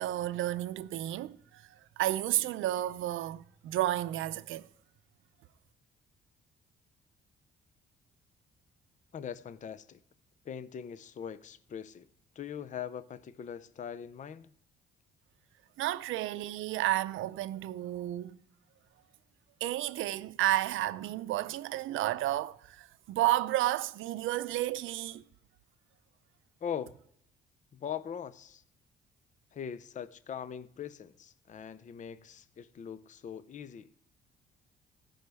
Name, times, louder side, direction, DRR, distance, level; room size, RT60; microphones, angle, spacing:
voice 1, 0.0-4.7 15.8-18.4 19.6-25.2, right 15 dB, 80° right, 0.5 m, -32 dB
voice 2, 9.1-10.0 10.4-12.1 12.4-14.5 26.6-26.9 27.7-28.6 29.5-33.9, left 8 dB, 40° left, 0.5 m, -41 dB
16.0 x 5.5 x 3.4 m
cardioid pair, 90°, 20 cm